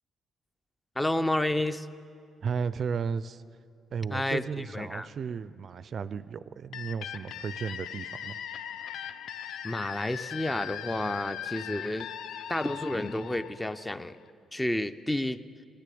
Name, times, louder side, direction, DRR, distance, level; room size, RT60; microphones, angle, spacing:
voice 1, 1.0-1.9 4.1-5.1 9.6-12.1 12.5-14.2 14.5-15.4, left 1 dB, 10° left, 12 dB, 0.5 m, -30 dB
voice 2, 2.4-3.4 3.9-8.4, right 6 dB, 55° right, 16 dB, 0.4 m, -34 dB
sound 1, 6.7-14.3, left 9 dB, 80° left, 0.4 m, -39 dB
15.5 x 10.0 x 8.4 m, 2.4 s
cardioid pair, 90°, 0 cm